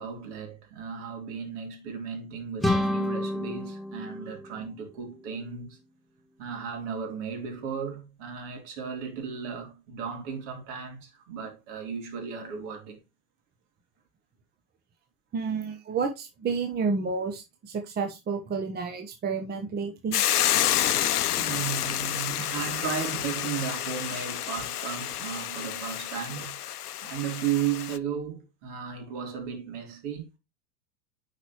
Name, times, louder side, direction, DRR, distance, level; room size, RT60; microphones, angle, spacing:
voice 1, 0.0-5.8 6.4-13.0 21.4-26.6 27.0-30.4, right 7 dB, 55° right, 3.3 m, -35 dB
sound 1, 2.6-5.4, left 1 dB, ahead, 1.0 m, -30 dB
voice 2, 15.3-20.2, right 5 dB, 20° right, 1.0 m, -30 dB
Hiss / Boiling, 20.1-28.0, left 11 dB, 90° left, 0.6 m, -29 dB
9.7 x 5.1 x 3.0 m
hypercardioid pair, 100°, 44 cm